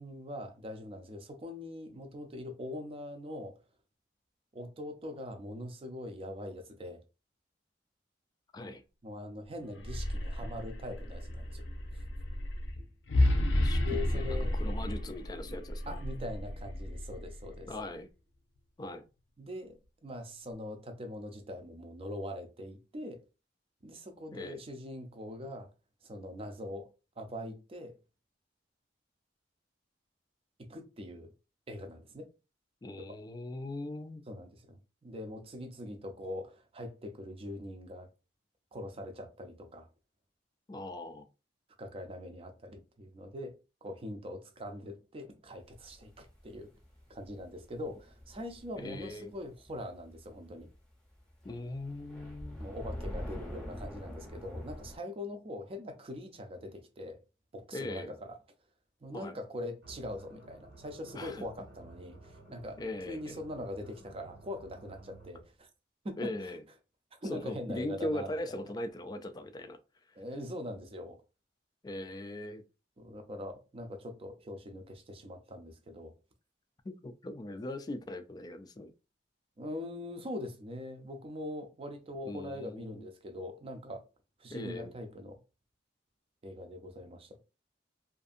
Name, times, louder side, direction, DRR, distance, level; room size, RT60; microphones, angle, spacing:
voice 1, 0.0-3.5 4.5-7.0 9.0-11.6 13.8-14.5 15.8-17.8 19.4-19.7 20.0-23.2 23.8-25.7 26.0-26.9 27.2-28.0 30.6-31.3 31.7-32.3 33.0-33.2 34.3-38.1 38.7-39.9 41.8-43.5 43.8-46.7 47.1-50.7 52.6-57.2 57.5-58.4 59.0-65.7 66.0-66.8 67.2-68.7 70.2-71.2 73.0-76.1 79.6-84.0 84.4-85.4 86.4-87.4, left 1 dB, 30° right, 0.5 m, -42 dB
sound 1, 9.7-17.8, left 1 dB, 80° left, 0.6 m, -32 dB
voice 2, 13.3-13.8 14.1-16.0 17.7-18.1 18.8-19.0 24.3-24.6 32.8-34.2 40.7-41.3 48.8-49.3 51.4-52.6 57.7-58.2 59.1-59.4 61.2-61.4 62.8-63.4 66.2-66.6 67.3-69.8 71.8-72.6 76.8-78.9 82.2-83.1 84.5-84.9, left 1 dB, 20° left, 0.3 m, -40 dB
sound 2, 45.7-50.3 50.6-50.7 51.2-55.0, equal, 5° left, 0.7 m, -44 dB
sound 3, 59.8-65.5, right 2 dB, 85° right, 1.2 m, -54 dB
2.5 x 2.5 x 2.5 m
head